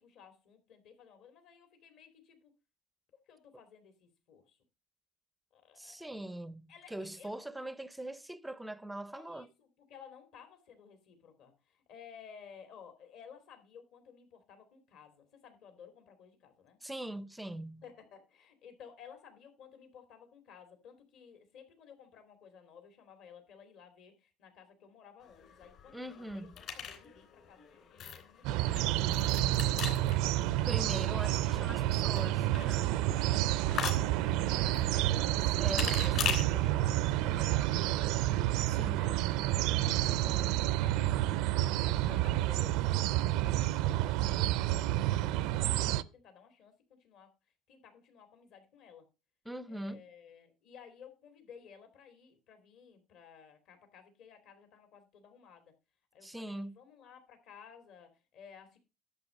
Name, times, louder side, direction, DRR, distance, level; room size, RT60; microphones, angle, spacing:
voice 1, 0.0-2.5 3.3-4.6 5.5-6.1 6.7-7.4 9.1-16.8 17.8-31.2 31.7-32.0 32.5-38.3 38.8-41.2 41.8-46.7 47.0-47.3 47.7-49.1 49.7-55.7 56.1-58.8, left 7 dB, 60° left, 2.9 m, -55 dB
voice 2, 5.8-9.5 16.8-17.9 25.9-26.6 30.7-32.9 35.6-36.7 38.7-39.0 49.5-50.1 56.2-56.8, right 1 dB, 5° right, 0.5 m, -42 dB
sound 1, 25.2-36.4, left 8 dB, 45° left, 3.1 m, -41 dB
sound 2, 28.4-46.0, right 14 dB, 75° right, 0.5 m, -29 dB
11.0 x 6.9 x 5.2 m
cardioid pair, 165°, 0 cm